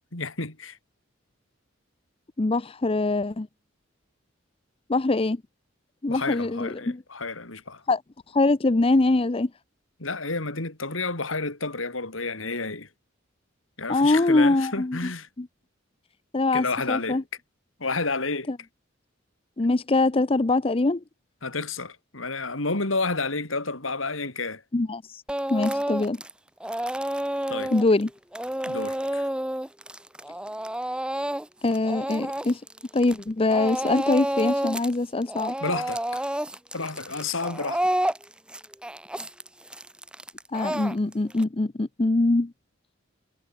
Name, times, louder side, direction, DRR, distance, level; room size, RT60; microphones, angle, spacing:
voice 1, 0.1-0.8 6.1-7.8 10.0-12.9 13.8-15.3 16.5-17.2 17.8-18.5 21.4-24.6 27.5-27.7 28.7-29.3 35.6-36.2 36.7-37.9, left 3 dB, 90° left, 4.0 m, -30 dB
voice 2, 2.4-3.5 4.9-5.4 6.0-7.0 7.9-8.0 8.3-9.5 13.9-15.1 15.4-15.5 16.3-17.2 18.5-18.6 19.6-21.0 24.7-25.2 25.5-26.2 27.7-28.1 31.6-32.6 32.9-35.5 40.5-42.5, left 2 dB, 30° left, 0.6 m, -23 dB
Speech / Crying sobbing, 25.3-26.3 26.6-33.2 33.5-34.9 35.2-41.4, right 1 dB, 5° right, 1.4 m, -30 dB
head